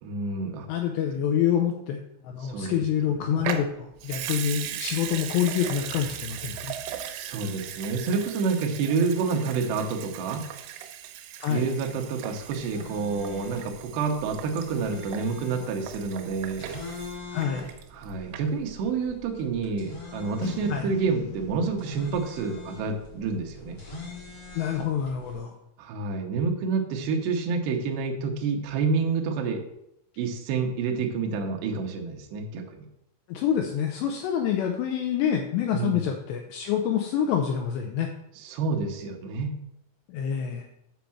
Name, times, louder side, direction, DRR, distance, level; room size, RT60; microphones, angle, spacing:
voice 1, 0.0-0.7 2.4-2.8 3.2-3.5 7.1-10.4 11.5-16.7 17.9-23.8 25.8-29.6 30.2-32.9 35.7-36.1 38.4-39.6, right 4 dB, 70° right, 2 dB, 2.8 m, -28 dB
voice 2, 0.7-6.7 11.4-11.7 17.3-17.7 20.7-20.9 24.5-25.6 33.3-38.1 40.1-40.7, left 9 dB, 85° left, 3 dB, 2.4 m, -27 dB
Water tap faucet / Sink (filling or washing) / Liquid, 3.4-18.0 18.3-18.4, right 10 dB, 90° right, 3.4 m, -38 dB
sound 1, 12.4-25.4, left 3 dB, 30° left, 2.1 m, -44 dB
Boom, 20.4-23.7, left 4 dB, 70° left, 2.1 m, -40 dB
7.6 x 5.2 x 7.1 m, 0.79 s
omnidirectional pair, 5.9 m